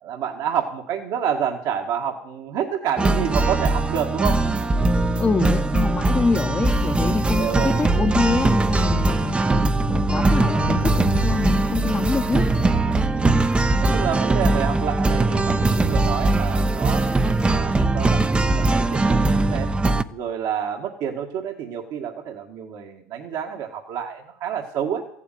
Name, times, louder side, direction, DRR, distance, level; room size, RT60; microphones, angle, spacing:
voice 1, 0.0-4.4 7.0-7.8 8.9-9.0 13.1-13.4 13.8-19.7 20.1-25.0, right 8 dB, 55° right, 2 dB, 1.8 m, -29 dB
sound 1, 3.0-20.0, right 2 dB, 15° right, 0.8 m, -20 dB
sound 2, 5.2-14.7 15.5-15.6, left 9 dB, 85° left, 1.1 m, -41 dB
voice 2, 5.2-12.4, left 4 dB, 20° left, 2 dB, 1.0 m, -25 dB
15.0 x 8.4 x 9.2 m, 0.78 s
supercardioid pair, 100°, 8 cm